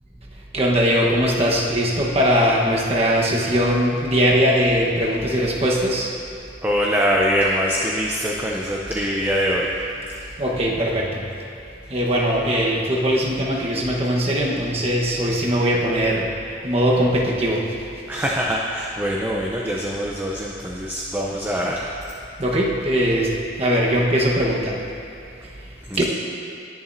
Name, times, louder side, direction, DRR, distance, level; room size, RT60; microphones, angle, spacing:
voice 1, 0.5-6.1 10.4-11.2 11.9-16.3 16.6-17.6 22.4-23.3 23.6-24.8 26.0-26.1, equal, 35° right, -3 dB, 1.2 m, -20 dB
voice 2, 6.6-9.8 18.1-22.0 25.9-26.0, equal, 10° right, -3 dB, 0.6 m, -23 dB
19.0 x 7.2 x 2.7 m, 2.6 s
head